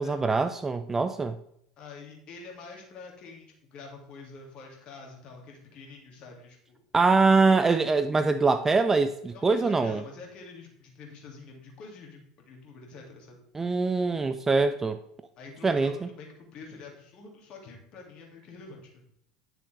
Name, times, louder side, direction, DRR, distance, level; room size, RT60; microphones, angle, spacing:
voice 1, 0.0-1.4 6.9-10.0 13.5-15.0 15.6-16.1, right 4 dB, 15° right, 11 dB, 0.5 m, -23 dB
voice 2, 1.8-6.8 9.3-13.4 15.4-19.0, left 4 dB, 40° left, 1 dB, 2.5 m, -46 dB
10.0 x 6.6 x 3.4 m, 0.73 s
figure-of-eight pair, 75°, 2 cm